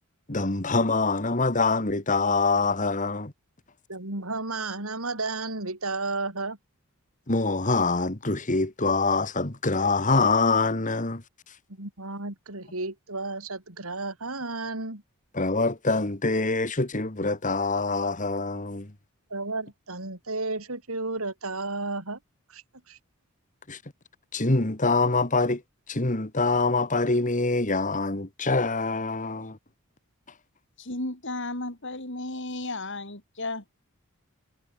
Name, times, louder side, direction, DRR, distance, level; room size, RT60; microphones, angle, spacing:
voice 1, 0.3-3.3 7.3-11.2 15.3-18.9 23.7-23.8 24.3-25.6 25.9-29.6, left 3 dB, 35° left, 1.9 m, -25 dB
voice 2, 3.9-6.6 11.8-15.0 19.3-22.2 22.5-22.6 22.9-23.0, right 3 dB, 70° right, 4.5 m, -32 dB
voice 3, 30.8-33.6, left 2 dB, 55° left, 4.8 m, -34 dB
head